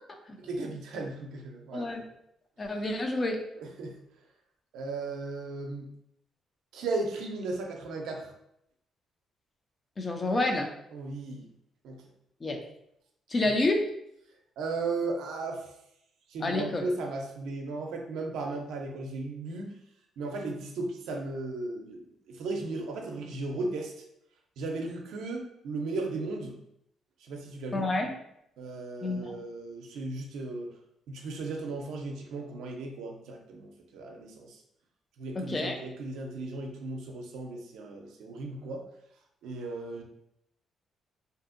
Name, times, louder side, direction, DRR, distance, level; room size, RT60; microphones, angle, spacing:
voice 1, 0.4-1.9 3.6-3.9 4.7-5.9 6.7-8.3 10.9-11.5 11.8-12.0 14.6-15.7 16.3-19.7 20.2-23.9 24.6-26.6 27.2-27.9 28.6-30.7 31.1-34.6 35.2-38.8 39.4-40.0, right 3 dB, 85° right, 2 dB, 0.5 m, -36 dB
voice 2, 1.7-2.0 2.6-3.4 10.0-10.7 12.4-12.6 13.3-13.8 16.4-16.8 27.7-28.1 29.0-29.4 35.4-35.8, left 2 dB, 35° left, 3 dB, 0.5 m, -28 dB
2.7 x 2.5 x 2.5 m, 0.77 s
cardioid pair, 90°, 0 cm